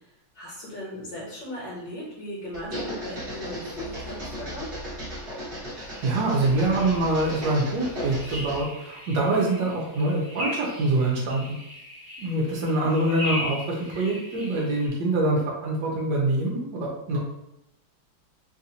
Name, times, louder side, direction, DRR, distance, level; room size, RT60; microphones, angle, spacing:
voice 1, 0.3-4.7, left 1 dB, 70° left, -7 dB, 1.7 m, -37 dB
sound 1, 2.5-8.7, equal, 40° right, 1.4 m, -36 dB
sound 2, 5.8-14.9, left 1 dB, 20° right, 1.1 m, -38 dB
voice 2, 6.0-11.6 12.2-17.2, right 2 dB, 70° right, -3 dB, 1.4 m, -25 dB
3.7 x 2.5 x 2.8 m, 0.83 s
omnidirectional pair, 2.1 m